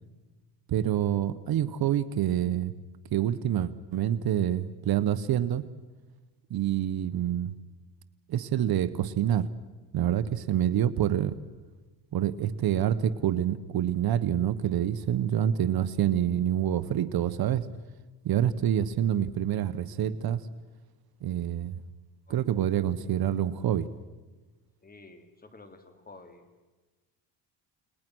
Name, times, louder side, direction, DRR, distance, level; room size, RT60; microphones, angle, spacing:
voice 1, 0.7-2.7 3.1-5.6 6.5-7.5 8.3-9.5 9.9-11.4 12.1-17.6 18.2-20.4 21.2-21.8 22.3-23.9, right 10 dB, 55° right, 14 dB, 1.1 m, -27 dB
voice 2, 24.8-26.5, left 3 dB, 20° left, 7 dB, 3.0 m, -51 dB
30.0 x 20.5 x 6.2 m, 1.2 s
cardioid pair, 115°, 42 cm